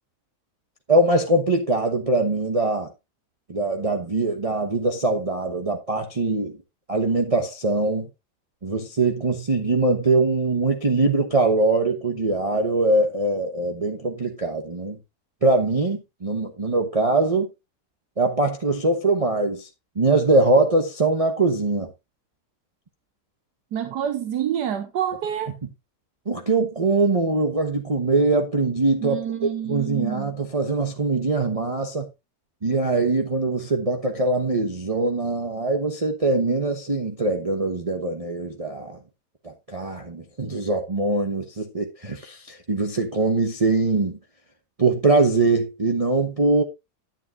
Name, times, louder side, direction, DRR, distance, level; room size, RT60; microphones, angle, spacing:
voice 1, 0.9-2.9 3.5-6.5 6.9-8.1 8.6-15.0 15.4-17.5 18.2-19.7 20.0-21.9 26.3-32.1 32.6-39.0 39.4-44.2 44.8-46.6, right 2 dB, 25° right, 0.9 m, -22 dB
voice 2, 23.7-25.6 29.0-30.3, right 9 dB, 85° right, 1.5 m, -27 dB
10.5 x 9.4 x 2.5 m
omnidirectional pair, 1.7 m